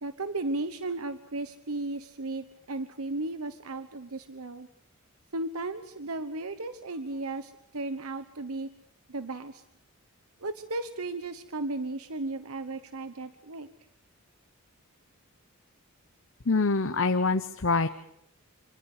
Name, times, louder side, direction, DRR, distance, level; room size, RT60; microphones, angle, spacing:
voice 1, 0.0-4.7 5.3-8.7 9.1-9.6 10.4-13.7, right 2 dB, 75° right, 10 dB, 1.1 m, -35 dB
voice 2, 16.4-17.9, left 3 dB, 60° left, 8 dB, 1.0 m, -25 dB
26.5 x 26.0 x 4.9 m, 0.77 s
head